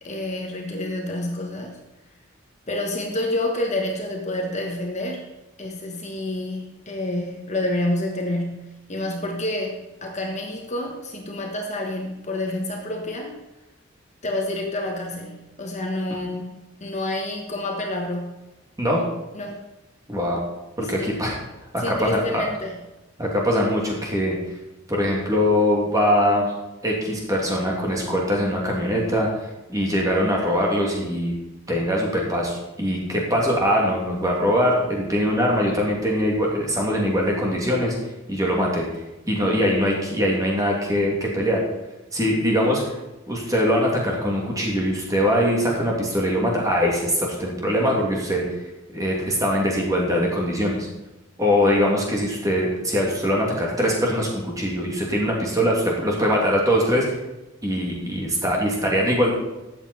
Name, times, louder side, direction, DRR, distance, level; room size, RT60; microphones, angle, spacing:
voice 1, 0.0-1.8 2.7-5.2 5.6-8.6 8.9-13.3 14.2-18.4 19.3-19.6 20.8-21.1 21.8-22.8, left 1 dB, 35° left, 1 dB, 1.4 m, -28 dB
voice 2, 20.1-20.4 20.8-21.4 21.7-22.5 23.2-24.4 24.9-26.5 26.8-29.3 29.7-31.3 31.7-37.9 38.3-38.9 39.3-41.6 42.1-42.9 43.3-48.4 48.9-50.9 51.4-57.2 57.6-59.3, equal, 15° right, -2 dB, 2.6 m, -22 dB
13.0 x 8.3 x 4.3 m, 1.0 s
head